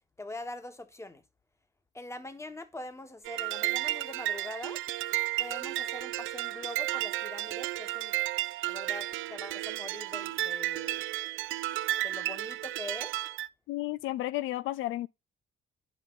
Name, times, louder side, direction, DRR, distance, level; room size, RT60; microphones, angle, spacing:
voice 1, 0.2-1.2 1.9-4.8 5.4-8.1 8.7-11.0 12.0-13.1, left 2 dB, 15° left, 1.3 m, -43 dB
sound 1, 3.2-13.5, right 15 dB, 80° right, 0.4 m, -33 dB
voice 2, 13.7-15.1, left 16 dB, 85° left, 0.4 m, -32 dB
11.0 x 5.3 x 3.8 m
cardioid pair, 90°, 20 cm